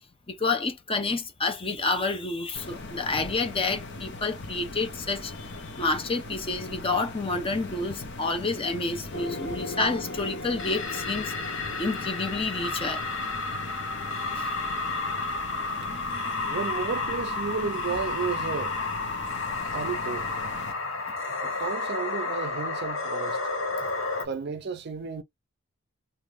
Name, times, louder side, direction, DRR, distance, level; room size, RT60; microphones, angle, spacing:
voice 1, 0.3-11.3 11.8-13.0 14.4-14.5 21.1-21.2, left 3 dB, 25° left, 0.8 m, -29 dB
sound 1, 2.5-20.7, left 2 dB, 60° left, 0.9 m, -40 dB
sound 2, 9.1-24.3, left 3 dB, 80° left, 1.2 m, -32 dB
voice 2, 16.5-18.8 19.6-20.3 21.4-23.4 24.2-25.2, right 5 dB, 55° right, 0.5 m, -32 dB
3.0 x 2.5 x 3.4 m
head